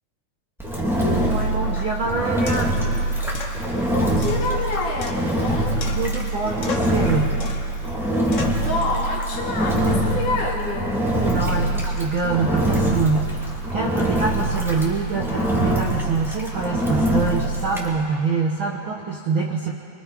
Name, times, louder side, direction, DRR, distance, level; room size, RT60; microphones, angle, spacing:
Engine, 0.6-17.9, right 1 dB, ahead, 1.9 m, -24 dB
voice 1, 1.2-2.7 6.0-7.4 10.0-10.2 11.1-19.7, right 4 dB, 65° right, 0 dB, 1.3 m, -25 dB
sound 1, 2.5-2.8 3.3-3.6 4.2-5.5 5.8-6.3 6.6-7.0 7.4-7.8 8.3-8.7, left 3 dB, 50° left, 0.9 m, -35 dB
voice 2, 3.9-5.8 8.6-11.1, left 3 dB, 70° left, -2 dB, 4.1 m, -27 dB
26.0 x 23.0 x 5.0 m, 2.6 s
omnidirectional pair, 3.8 m